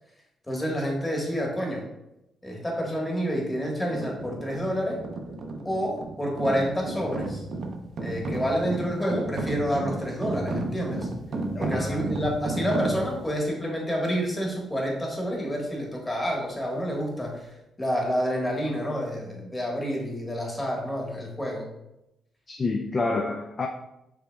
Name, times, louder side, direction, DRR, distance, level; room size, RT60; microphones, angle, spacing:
voice 1, 0.5-1.8 2.4-5.0 5.6-7.4 8.0-11.1 11.6-17.5 17.8-21.7, equal, 20° left, -1 dB, 1.3 m, -28 dB
sound 1, 3.9-13.3, right 2 dB, 60° right, 0.5 m, -33 dB
voice 2, 11.5-12.0 22.5-23.7, left 3 dB, 35° left, 3 dB, 0.3 m, -28 dB
4.9 x 3.4 x 2.2 m, 0.88 s
cardioid pair, 80°, 0 cm